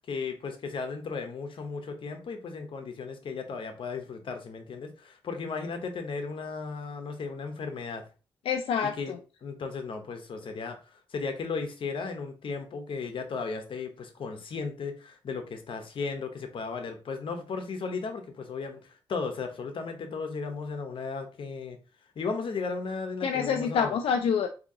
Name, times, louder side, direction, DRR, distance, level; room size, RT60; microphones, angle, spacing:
voice 1, 0.1-8.1 9.0-9.1 9.4-10.8 11.1-21.8 22.2-24.0, left 4 dB, 65° left, 6 dB, 0.8 m, -35 dB
voice 2, 8.5-9.2 23.2-24.5, left 7 dB, 85° left, 4 dB, 0.4 m, -27 dB
3.7 x 2.8 x 2.7 m, 0.33 s
cardioid pair, 90°, 10 cm